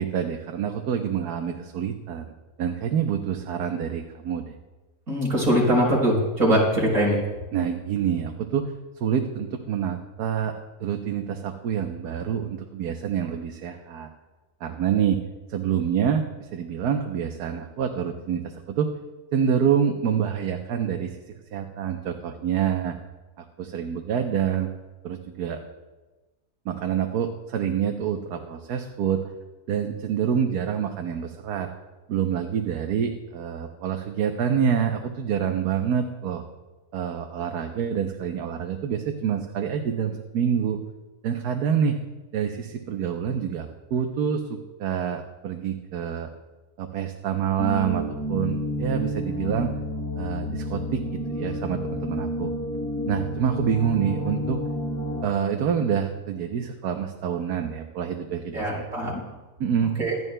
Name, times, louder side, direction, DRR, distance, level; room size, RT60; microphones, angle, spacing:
voice 1, 0.0-2.3 2.6-4.5 7.5-10.5 10.8-14.1 14.6-15.2 15.5-18.9 19.3-21.2 21.5-23.0 23.4-24.7 25.0-25.6 26.6-29.2 29.7-31.7 32.1-36.4 36.9-40.8 41.2-42.0 42.3-46.3 46.8-49.7 50.2-51.0 51.3-52.5 53.1-54.6 55.2-59.1 59.6-60.0, right 8 dB, 85° right, 4 dB, 1.3 m, -27 dB
voice 2, 5.1-7.2 58.5-59.1 60.0-60.1, equal, 65° right, -3 dB, 4.3 m, -22 dB
sound 1, 47.6-55.3, equal, 25° left, 0.3 m, -30 dB
25.5 x 11.0 x 2.2 m, 1.2 s
omnidirectional pair, 1.6 m